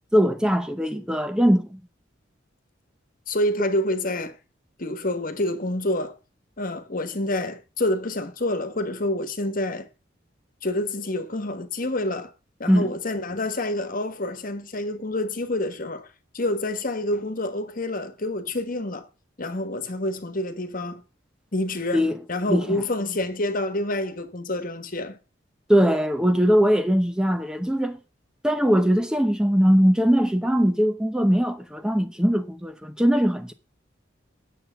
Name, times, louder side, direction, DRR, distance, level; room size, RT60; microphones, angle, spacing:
voice 1, 0.1-1.8 12.7-12.9 21.9-22.2 22.5-22.8 25.7-28.0 28.4-33.5, equal, 5° right, 0.8 m, -21 dB
voice 2, 3.3-4.4 4.8-6.1 6.6-9.9 10.6-12.3 12.6-16.1 16.3-19.1 19.4-21.0 21.5-25.2, left 1 dB, 45° left, 1.5 m, -27 dB
9.8 x 7.2 x 5.7 m
head